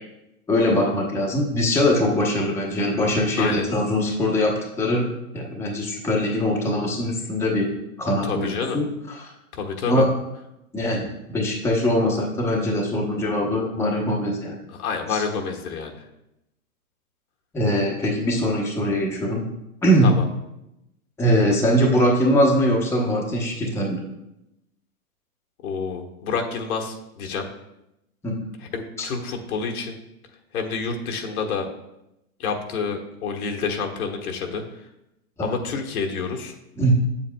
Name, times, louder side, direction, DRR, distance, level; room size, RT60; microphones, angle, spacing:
voice 1, 0.5-5.1 5.3-7.7 8.0-9.3 9.9-10.1 10.7-14.6 15.1-15.2 17.5-19.5 19.8-20.1 21.2-24.0 28.2-28.3 29.0-29.1 35.4-35.5 36.8-36.9, equal, 5° left, -3 dB, 0.9 m, -22 dB
voice 2, 3.4-3.7 8.2-8.8 9.5-10.0 14.8-15.9 20.0-20.3 25.6-27.5 28.7-30.0 30.5-31.7 32.4-34.6 35.4-36.6, left 5 dB, 70° left, 3 dB, 1.3 m, -28 dB
8.1 x 7.3 x 2.2 m, 0.88 s
hypercardioid pair, 130°, 45 cm